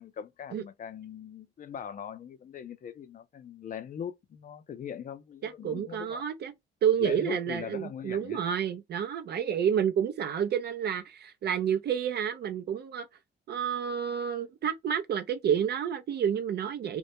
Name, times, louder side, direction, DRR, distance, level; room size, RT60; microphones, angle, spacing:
voice 1, 0.0-6.2 7.0-8.4, left 7 dB, 45° left, 0.5 m, -40 dB
voice 2, 5.4-6.5 6.8-13.1 13.5-17.0, right 8 dB, 55° right, 0.4 m, -29 dB
2.2 x 2.0 x 2.7 m
cardioid pair, 90°, 20 cm